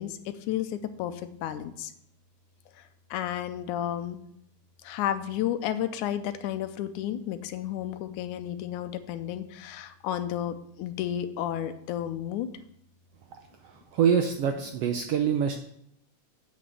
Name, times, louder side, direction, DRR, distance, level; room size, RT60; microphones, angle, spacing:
voice 1, 0.0-1.9 3.1-4.2 4.8-12.5, left 11 dB, 85° left, 10 dB, 2.2 m, -32 dB
voice 2, 13.9-15.6, right 7 dB, 75° right, 5 dB, 1.4 m, -25 dB
7.9 x 6.3 x 7.6 m, 0.73 s
omnidirectional pair, 3.5 m